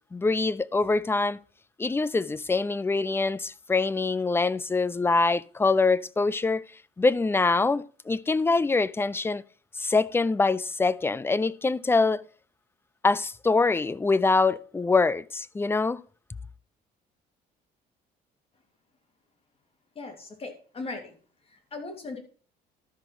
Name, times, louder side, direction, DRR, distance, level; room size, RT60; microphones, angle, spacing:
voice 1, 0.1-1.4 1.8-6.6 7.0-9.4 9.7-12.2 13.0-16.0, left 3 dB, 15° left, 0.4 m, -24 dB
voice 2, 20.0-21.1 21.7-22.2, left 3 dB, 35° left, 2.6 m, -38 dB
12.5 x 5.1 x 6.0 m
cardioid pair, 110°, 17 cm